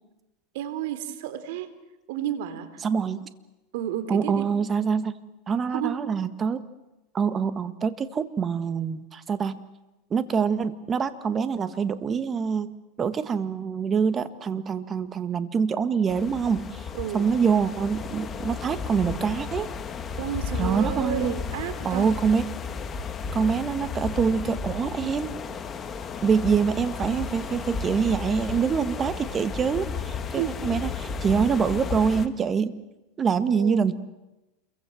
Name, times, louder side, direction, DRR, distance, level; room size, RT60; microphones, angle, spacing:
voice 1, 0.5-1.7 2.1-2.7 3.7-4.5 5.7-6.0 16.9-17.3 20.2-22.1 30.4-30.5 33.5-33.9, right 11 dB, 70° right, 11 dB, 3.3 m, -31 dB
voice 2, 2.8-3.2 4.1-5.2 5.5-6.6 7.1-9.6 10.1-12.7 13.0-19.7 20.6-21.3 21.8-22.5 23.3-25.3 26.2-32.7 33.2-34.0, right 6 dB, 25° right, 12 dB, 1.7 m, -25 dB
sound 1, 16.1-32.3, left 5 dB, 25° left, 1.8 m, -33 dB
28.0 x 23.0 x 7.8 m, 1.0 s
supercardioid pair, 130°, 0 cm